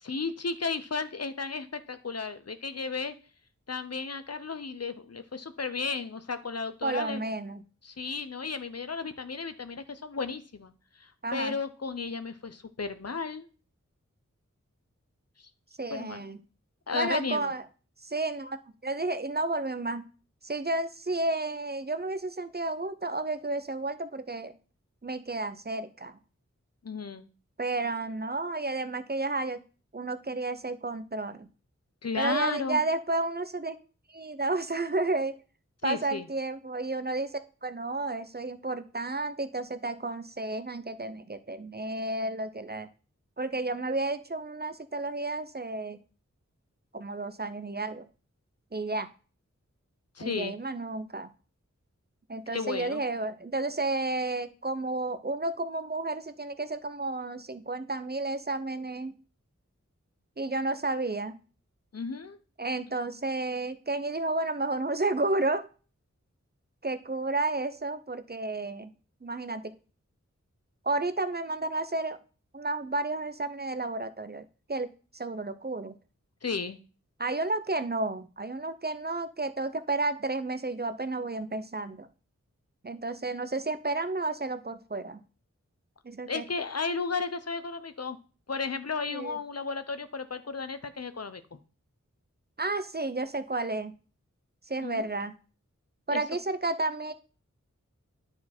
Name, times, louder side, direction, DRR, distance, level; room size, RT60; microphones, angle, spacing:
voice 1, 0.0-3.1 3.7-7.2 7.8-10.7 11.0-13.5 15.9-16.3 16.9-17.5 26.8-27.3 32.0-32.8 35.8-36.3 50.2-50.5 52.5-53.0 61.9-62.4 76.4-76.8 86.3-88.2 88.5-91.4 94.8-95.1 96.1-96.2, left 4 dB, 55° left, 11 dB, 0.7 m, -34 dB
voice 2, 6.8-7.6 11.2-11.5 15.8-16.4 16.9-17.6 18.0-18.6 18.8-20.1 20.4-24.5 25.0-26.2 27.6-29.6 29.9-31.5 32.2-33.8 34.1-35.3 35.8-42.9 43.4-46.0 46.9-48.1 48.7-49.1 50.2-51.3 52.3-59.1 60.4-61.4 62.6-65.7 66.8-68.9 69.2-69.7 70.8-72.2 72.5-75.9 77.2-82.1 82.8-85.2 86.0-86.4 89.1-89.4 92.6-94.0 94.7-95.3 96.1-97.1, right 2 dB, 35° right, 10 dB, 0.6 m, -32 dB
9.8 x 4.4 x 4.3 m, 0.37 s
wide cardioid pair, 50°, 30 cm